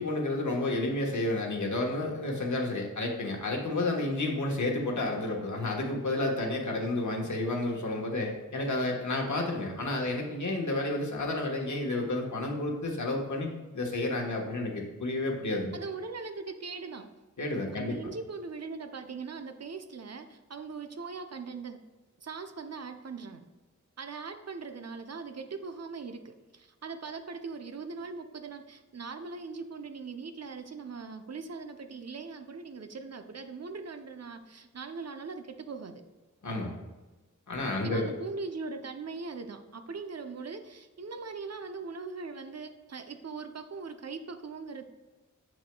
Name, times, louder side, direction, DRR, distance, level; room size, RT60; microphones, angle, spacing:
voice 1, 0.0-15.7 17.4-17.9 36.4-36.8 37.5-38.1, left 2 dB, 70° left, 0 dB, 1.2 m, -31 dB
voice 2, 15.7-17.1 17.8-21.8 22.2-23.4 24.0-35.9 37.8-44.8, right 4 dB, 55° right, 7 dB, 0.6 m, -40 dB
7.3 x 6.3 x 2.2 m, 1.2 s
wide cardioid pair, 80°, 31 cm